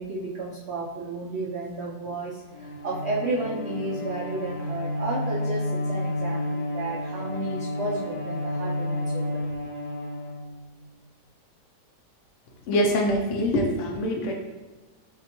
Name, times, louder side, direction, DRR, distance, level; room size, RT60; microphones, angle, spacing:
voice 1, 0.0-9.5, right 2 dB, 75° right, -5 dB, 0.6 m, -32 dB
Bowed string instrument, 2.5-10.9, left 1 dB, 60° left, 1.3 m, -31 dB
voice 2, 12.7-14.3, left 1 dB, 85° left, 1 dB, 0.6 m, -24 dB
5.8 x 2.2 x 2.9 m, 1.3 s
omnidirectional pair, 1.9 m